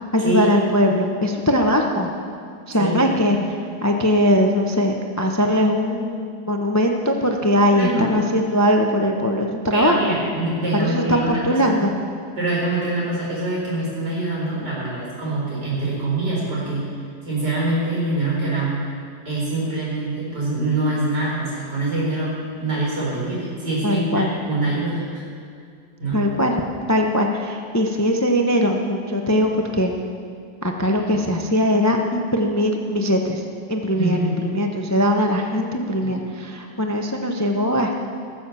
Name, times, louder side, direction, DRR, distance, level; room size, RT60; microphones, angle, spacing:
voice 1, 0.1-2.1 2.7-3.4 3.8-10.2 10.7-11.9 23.8-24.3 26.1-26.5 26.9-29.9 30.6-33.4 33.7-37.9, equal, 20° left, 2 dB, 0.5 m, -20 dB
voice 2, 2.8-3.4 7.8-8.1 9.7-11.7 12.4-16.9 17.2-18.8 19.3-22.3 22.6-25.2 26.0-26.2 34.0-34.3 36.0-36.1, right 2 dB, 85° right, -5 dB, 5.3 m, -24 dB
17.5 x 7.3 x 7.3 m, 2.3 s
omnidirectional pair, 1.8 m